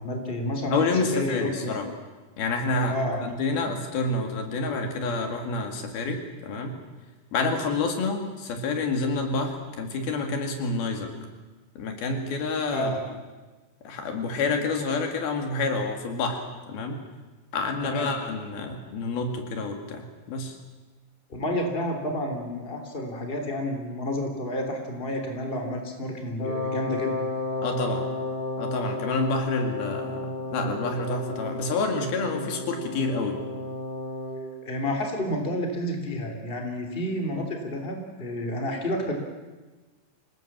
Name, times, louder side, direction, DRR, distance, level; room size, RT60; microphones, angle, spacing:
voice 1, 0.0-0.9 1.1-1.7 2.9-3.2 12.7-13.0 17.8-18.1 21.3-27.2 34.6-39.1, left 1 dB, 15° left, 3 dB, 3.2 m, -30 dB
voice 2, 0.7-1.9 2.4-3.0 3.2-6.8 7.3-11.1 11.8-12.9 13.8-17.0 17.5-20.6 27.6-28.1 28.6-33.4, left 3 dB, 80° left, 4 dB, 4.3 m, -28 dB
Wind instrument woodwind instrument, 26.4-34.5, left 2 dB, 60° left, 6.8 m, -32 dB
26.0 x 18.5 x 7.5 m, 1.2 s
omnidirectional pair, 4.2 m